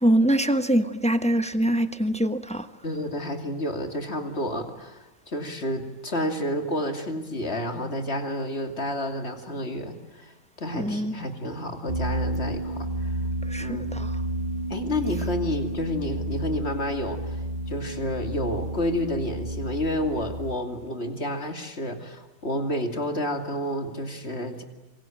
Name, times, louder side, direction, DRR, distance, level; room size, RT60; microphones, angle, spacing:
voice 1, 0.0-2.7 10.7-11.1 13.5-14.1, right 1 dB, 5° left, 10 dB, 0.7 m, -23 dB
voice 2, 2.8-13.2 13.6-13.9 14.7-24.6, left 1 dB, 35° left, 5 dB, 2.8 m, -30 dB
sound 1, 11.9-20.6, right 1 dB, 25° right, 1.4 m, -31 dB
26.5 x 24.0 x 9.1 m, 1.1 s
omnidirectional pair, 1.8 m